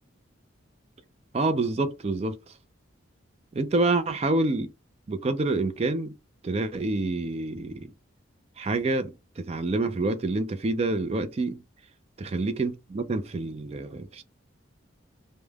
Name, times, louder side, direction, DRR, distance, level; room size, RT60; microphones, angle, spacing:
voice 1, 1.3-2.4 3.5-4.7 5.1-6.1 6.4-7.9 8.6-11.6 12.2-14.2, right 2 dB, 30° right, 0.3 m, -27 dB
3.3 x 2.1 x 2.2 m
head